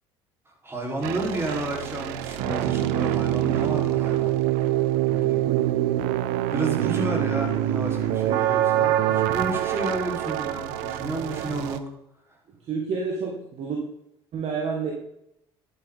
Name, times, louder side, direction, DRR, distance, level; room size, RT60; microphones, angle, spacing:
voice 1, 0.5-4.4 5.0-5.5 6.5-11.9, right 1 dB, 20° right, -1 dB, 4.1 m, -31 dB
sound 1, 1.0-11.8, right 13 dB, 65° right, 0.7 m, -25 dB
voice 2, 12.6-13.8 14.3-14.9, right 5 dB, 50° right, 1 dB, 1.9 m, -29 dB
11.0 x 9.4 x 3.9 m, 0.80 s
hypercardioid pair, 65°, 14 cm